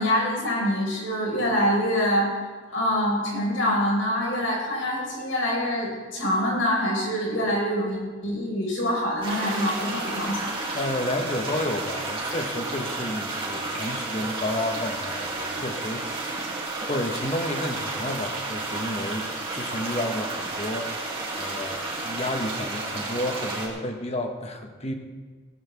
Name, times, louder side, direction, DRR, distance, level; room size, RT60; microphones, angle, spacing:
voice 1, 0.0-2.3 2.7-10.5, equal, 90° left, -2 dB, 5.1 m, -25 dB
sound 1, 9.2-23.7, right 2 dB, 25° right, 2.8 m, -32 dB
voice 2, 10.7-16.4 16.8-24.9, left 1 dB, 35° left, 4 dB, 1.4 m, -31 dB
17.0 x 14.0 x 3.6 m, 1.4 s
head